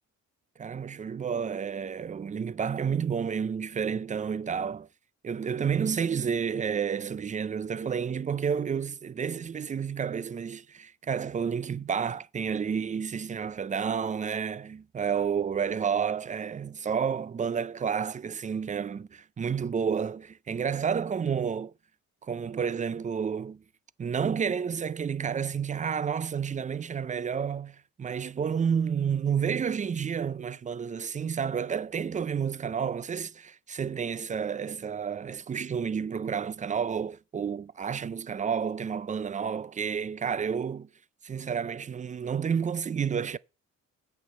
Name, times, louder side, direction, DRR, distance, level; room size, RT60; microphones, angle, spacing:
voice 1, 0.6-4.9 5.2-21.7 22.2-23.6 24.0-40.9 41.2-43.4, right 7 dB, 25° right, 0.4 m, -30 dB
8.5 x 5.6 x 7.2 m
cardioid pair, 90°, 30 cm